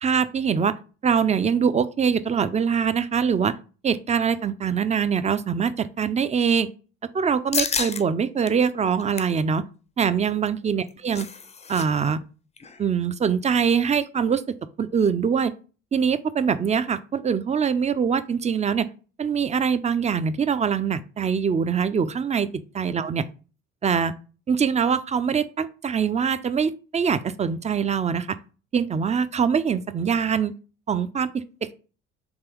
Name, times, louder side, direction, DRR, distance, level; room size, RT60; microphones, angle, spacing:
voice 1, 0.0-0.7 1.0-3.6 3.8-6.7 7.1-9.6 10.0-11.3 11.7-12.2 12.8-14.4 14.8-15.5 15.9-18.9 19.2-22.5 22.8-23.2 23.8-24.1 24.5-28.3 28.7-30.6 30.9-31.7, right 6 dB, 25° right, 0.5 m, -23 dB
sound 1, 7.5-8.0 8.5-8.6 8.9-9.4 10.7-11.9 12.1-12.2 12.6-12.8, left 5 dB, 20° left, 0.5 m, -29 dB
3.7 x 2.9 x 4.6 m
hypercardioid pair, 60°, 30 cm